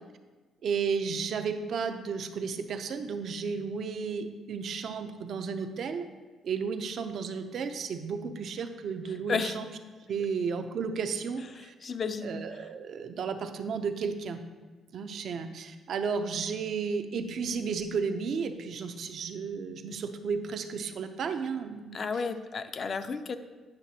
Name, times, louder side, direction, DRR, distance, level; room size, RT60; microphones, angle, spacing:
voice 1, 0.6-6.1 6.4-9.7 10.1-11.7 12.2-14.4 14.9-22.2, right 5 dB, 65° right, 8 dB, 0.5 m, -33 dB
voice 2, 11.8-12.4 21.9-23.4, left 5 dB, 45° left, 10 dB, 0.4 m, -32 dB
8.9 x 5.8 x 2.8 m, 1.3 s
cardioid pair, 90°, 0 cm